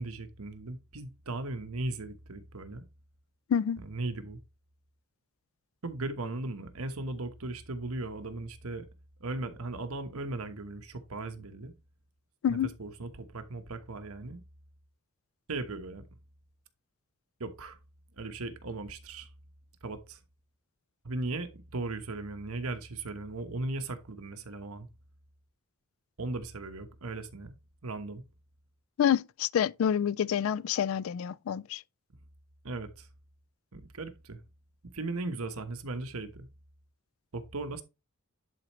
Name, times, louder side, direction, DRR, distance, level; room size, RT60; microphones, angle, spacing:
voice 1, 0.0-2.8 3.8-4.4 5.8-8.9 9.2-11.7 12.5-14.4 15.5-16.0 17.4-17.8 18.2-19.3 19.8-20.2 21.0-24.9 26.2-27.5 27.8-28.2 32.6-33.1 33.7-34.4 34.8-36.5 37.3-37.8, right 2 dB, 75° right, 1.2 m, -37 dB
voice 2, 29.0-31.8, left 8 dB, 60° left, 0.3 m, -28 dB
10.5 x 4.4 x 3.1 m
head